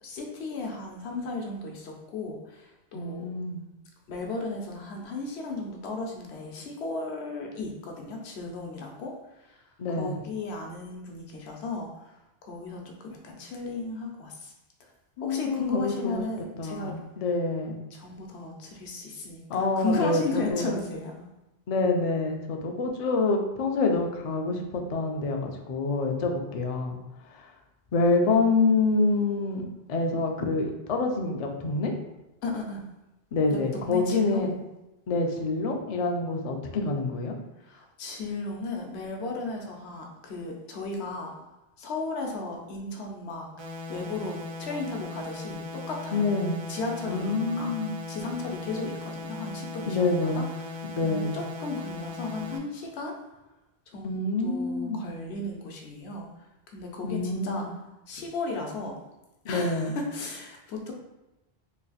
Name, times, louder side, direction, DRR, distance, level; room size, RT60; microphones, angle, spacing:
voice 1, 0.0-3.3 4.1-9.1 9.4-9.6 9.9-14.5 14.8-14.9 15.2-17.0 17.9-21.3 32.4-32.8 33.5-34.4 37.6-41.3 41.8-43.5 43.9-46.2 46.7-47.7 48.1-50.4 51.0-53.1 53.9-56.3 56.7-57.6 58.1-58.9 59.5-60.9, left 3 dB, 80° left, 1 dB, 0.9 m, -35 dB
voice 2, 2.9-3.6 9.8-10.2 15.2-16.2 16.6-17.8 19.5-20.8 21.7-27.0 27.3-27.5 27.9-31.9 33.3-34.5 35.1-37.4 46.1-46.6 47.1-47.9 49.9-50.5 51.0-51.4 54.0-55.1 57.0-57.7 59.4-59.9, left 3 dB, 50° left, 3 dB, 0.4 m, -27 dB
sound 1, 43.6-52.6, left 3 dB, 50° right, 0.3 m, -38 dB
3.2 x 2.4 x 3.9 m, 0.98 s
omnidirectional pair, 1.1 m